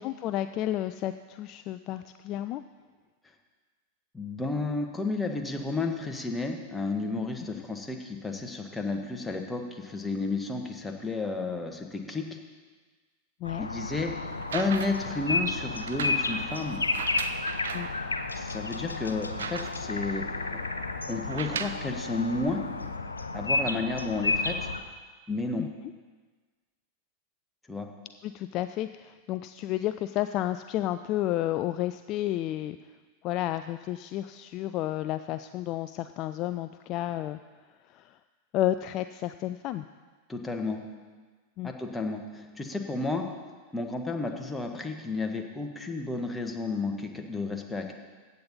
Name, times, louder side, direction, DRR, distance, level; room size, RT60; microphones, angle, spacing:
voice 1, 0.0-2.6 13.4-13.7 17.7-17.9 25.6-25.7 28.2-32.8 33.2-37.4 37.9-38.1 38.5-39.9 41.6-41.7, left 13 dB, 40° left, 11 dB, 0.3 m, -31 dB
voice 2, 4.1-12.2 13.6-14.1 14.5-16.8 18.3-20.6 21.1-22.6 23.3-24.6 25.3-25.7 27.7-27.9 40.3-40.8 41.6-43.3 43.7-47.9, left 3 dB, 10° left, 3 dB, 1.3 m, -32 dB
sound 1, 13.4-24.8, left 3 dB, 80° left, 0.7 m, -32 dB
sound 2, 14.3-15.1 15.8-18.0 18.5-18.6 18.9-20.0 21.2-21.9 22.8-22.9, right 7 dB, 65° right, 0.6 m, -37 dB
15.0 x 8.3 x 4.1 m, 1.4 s
figure-of-eight pair, 90°, 0 cm